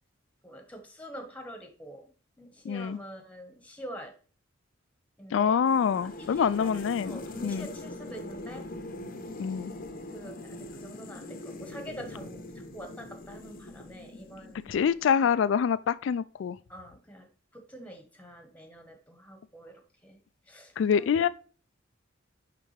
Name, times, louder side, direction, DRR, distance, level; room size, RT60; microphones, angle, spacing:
voice 1, 0.4-2.1 2.4-4.1 5.2-5.6 6.2-8.7 10.1-14.8 15.2-15.4 16.7-17.3 17.5-20.2 20.5-21.2, equal, 10° left, 1.2 m, -46 dB
voice 2, 2.6-3.0 5.3-7.7 9.4-9.7 14.7-16.6 20.8-21.3, left 7 dB, 65° left, 0.3 m, -26 dB
sound 1, 5.7-15.0, left 1 dB, 45° left, 0.7 m, -42 dB
9.8 x 3.4 x 3.3 m
head